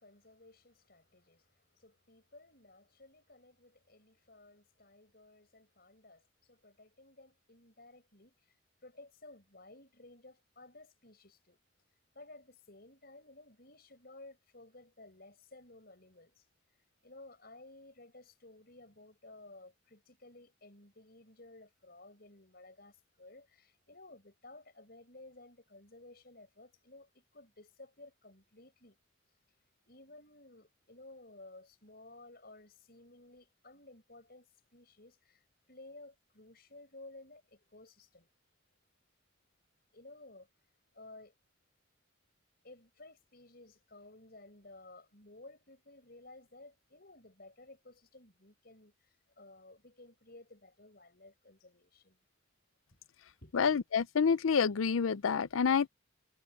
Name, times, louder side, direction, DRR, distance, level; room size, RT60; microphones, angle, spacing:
voice 1, 0.0-8.5 8.8-11.6 12.1-16.4 17.0-29.0 29.8-38.3 39.9-40.5 40.9-41.3 42.6-52.2 53.4-53.6, left 2 dB, 50° left, 6.6 m, -56 dB
voice 2, 53.5-55.9, left 6 dB, 80° left, 0.5 m, -28 dB
head